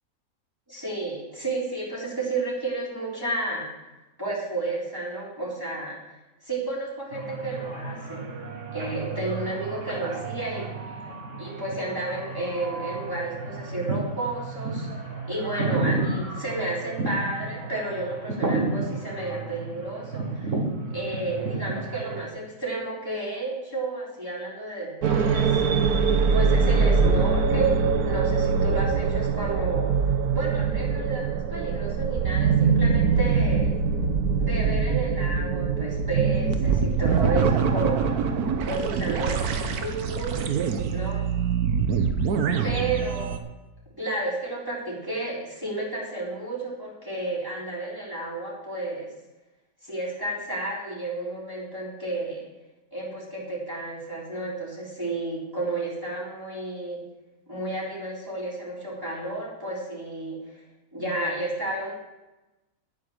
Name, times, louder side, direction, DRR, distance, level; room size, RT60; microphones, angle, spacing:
voice 1, 0.7-3.7 4.2-6.0 6.4-8.2 8.7-11.0 11.4-14.9 15.2-20.5 20.9-25.6 26.3-29.9 30.3-33.8 34.4-38.2 38.6-40.5 40.9-41.2 42.6-43.4 44.0-49.1 49.8-52.4 52.9-57.0 57.5-60.4 60.9-61.9, right 2 dB, 15° right, -7 dB, 4.0 m, -32 dB
sound 1, 7.1-22.3, right 3 dB, 50° right, 2.0 m, -32 dB
sound 2, 25.0-43.4, right 5 dB, 75° right, 1.4 m, -23 dB
10.0 x 9.4 x 6.4 m, 1.0 s
omnidirectional pair, 1.7 m